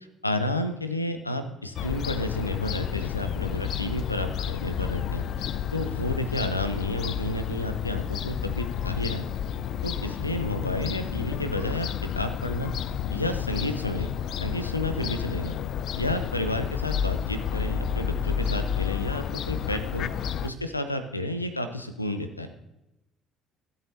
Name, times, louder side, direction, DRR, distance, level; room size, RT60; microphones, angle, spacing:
voice 1, 0.2-9.3 9.8-12.7 13.1-14.1 14.4-15.6 16.0-20.1 20.4-22.5, left 1 dB, 90° left, 9 dB, 0.6 m, -31 dB
Fowl / Gull seagull, 1.8-20.5, left 8 dB, 50° left, 0.4 m, -31 dB
15.5 x 8.1 x 2.7 m, 0.91 s
figure-of-eight pair, 55°, 0 cm